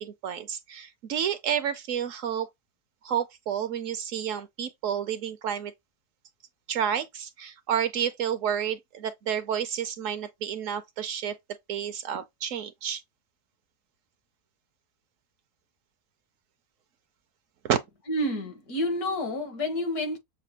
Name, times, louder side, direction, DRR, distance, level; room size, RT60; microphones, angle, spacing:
voice 1, 0.0-2.5 3.0-5.7 6.7-11.4 11.7-13.0 17.6-17.8, right 9 dB, 70° right, 0.8 m, -30 dB
voice 2, 18.1-20.2, left 1 dB, 80° left, 1.9 m, -29 dB
6.7 x 2.2 x 2.8 m
omnidirectional pair, 1.6 m